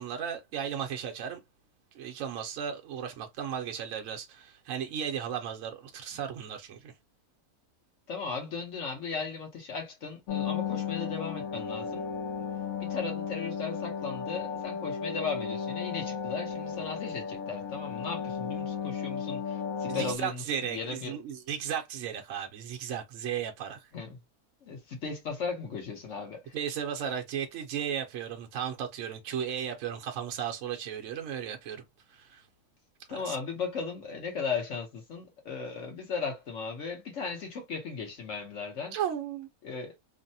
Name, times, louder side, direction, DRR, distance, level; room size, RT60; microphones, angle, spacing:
voice 1, 0.0-1.4 1.9-6.9 19.9-23.9 26.5-31.8 32.1-32.5 33.1-33.4 38.9-39.5, right 8 dB, 65° right, 0.9 m, -35 dB
voice 2, 8.1-12.1 12.8-21.1 23.9-24.2 24.6-26.6 33.1-38.9 39.6-40.0, left 5 dB, 55° left, 1.2 m, -36 dB
sound 1, 10.3-20.2, left 7 dB, 75° left, 1.0 m, -34 dB
3.2 x 2.1 x 2.7 m
omnidirectional pair, 1.6 m